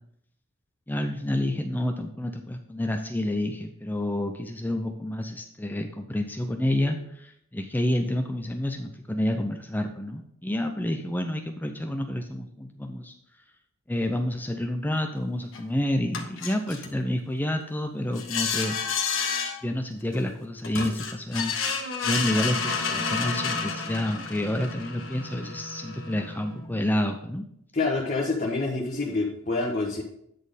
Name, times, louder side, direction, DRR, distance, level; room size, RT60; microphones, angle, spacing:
voice 1, 0.9-13.1 13.9-18.8 19.6-21.6 22.0-27.4, left 1 dB, 10° left, 5 dB, 0.5 m, -29 dB
sound 1, 15.5-15.6 16.1-16.9 18.2-19.6 20.1-20.2 20.6-26.8, left 5 dB, 60° left, 1.3 m, -30 dB
voice 2, 27.7-30.0, left 3 dB, 35° left, -2 dB, 1.1 m, -27 dB
9.3 x 4.3 x 5.1 m, 0.72 s
head